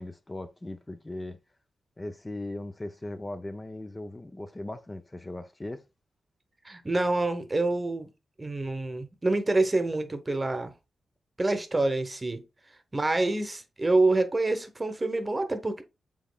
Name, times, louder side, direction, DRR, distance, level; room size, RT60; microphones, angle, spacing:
voice 1, 0.0-1.4 2.0-5.8, left 1 dB, 25° left, 0.5 m, -38 dB
voice 2, 6.6-8.1 8.4-10.7 11.4-12.4 12.9-15.8, right 2 dB, 30° right, 0.8 m, -27 dB
5.1 x 3.6 x 2.2 m
supercardioid pair, 45°, 0 cm